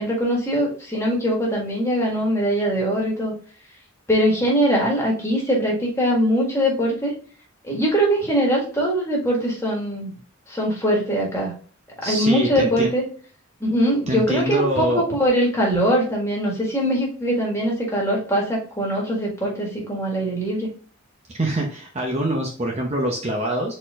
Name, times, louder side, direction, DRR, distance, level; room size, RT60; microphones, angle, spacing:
voice 1, 0.0-3.3 4.1-7.1 7.6-10.1 10.5-11.5 12.0-13.0 13.6-20.7, equal, 15° left, -3 dB, 1.6 m, -22 dB
voice 2, 12.0-12.9 14.1-15.0 21.4-23.7, right 1 dB, 30° right, -1 dB, 0.7 m, -24 dB
4.3 x 4.2 x 2.4 m, 0.42 s
head